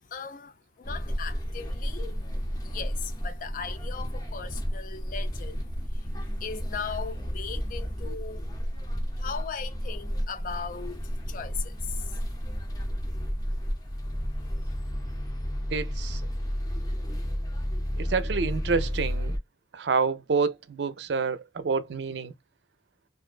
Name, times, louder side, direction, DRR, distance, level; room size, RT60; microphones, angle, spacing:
voice 1, 0.0-8.5 9.2-12.3, left 6 dB, 50° left, 0.4 m, -39 dB
sound 1, 0.8-19.4, equal, 20° left, 0.7 m, -32 dB
voice 2, 15.7-16.3 18.0-19.4 19.7-22.3, right 4 dB, 70° right, 0.5 m, -28 dB
2.4 x 2.2 x 2.3 m
head